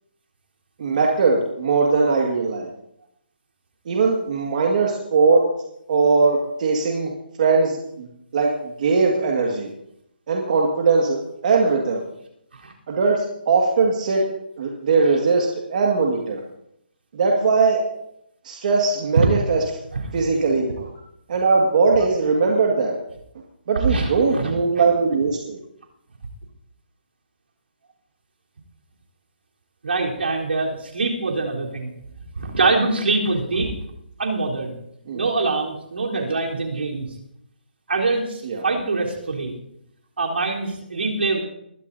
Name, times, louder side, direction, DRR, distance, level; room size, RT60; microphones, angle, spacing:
voice 1, 0.8-2.7 3.9-5.5 5.9-7.1 7.4-8.1 8.3-9.7 10.3-12.0 12.9-14.2 14.6-16.4 17.1-17.9 18.4-19.6 20.1-20.9 21.3-22.9 23.7-25.6 35.1-35.3 36.1-36.3 38.4-38.6, right 4 dB, 45° right, 0 dB, 2.0 m, -20 dB
voice 2, 23.9-24.9 29.8-31.9 32.4-33.7 34.2-34.7 35.1-37.1 37.9-39.6 40.2-41.4, right 3 dB, 75° right, -1 dB, 3.8 m, -24 dB
21.0 x 12.5 x 2.8 m, 0.77 s
hypercardioid pair, 155°, 6 cm